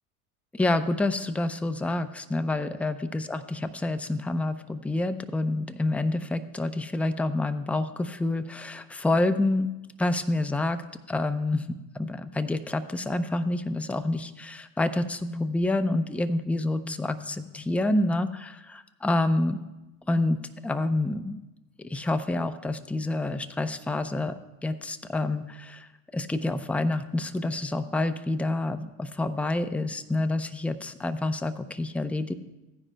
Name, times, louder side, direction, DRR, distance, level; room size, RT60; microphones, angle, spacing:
voice 1, 0.5-9.7 10.0-10.8 11.1-19.6 20.1-21.4 21.8-32.3, left 2 dB, 5° left, 9 dB, 0.5 m, -28 dB
15.5 x 9.9 x 2.2 m, 1.0 s
hypercardioid pair, 80°, 39 cm